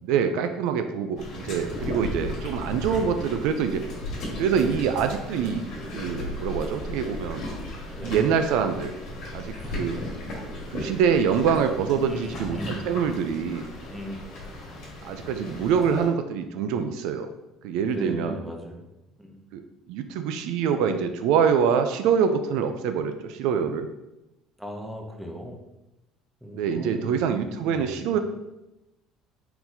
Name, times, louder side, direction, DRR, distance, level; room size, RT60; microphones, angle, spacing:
voice 1, 0.0-3.8 4.4-5.7 5.9-7.4 8.0-8.9 9.3-10.0 10.7-13.7 15.0-17.3 17.6-18.4 19.5-19.6 19.9-23.9 26.5-28.2, right 7 dB, 65° right, 8 dB, 0.3 m, -25 dB
sound 1, 1.2-16.1, left 1 dB, 50° left, 1.5 m, -36 dB
voice 2, 9.5-10.1 10.6-10.8 12.1-12.8 13.9-14.3 17.9-18.8 19.2-19.5 24.6-25.6 26.4-27.4 27.6-28.2, equal, ahead, 1 dB, 0.5 m, -38 dB
4.4 x 3.9 x 2.7 m, 0.95 s
cardioid pair, 175°, 0 cm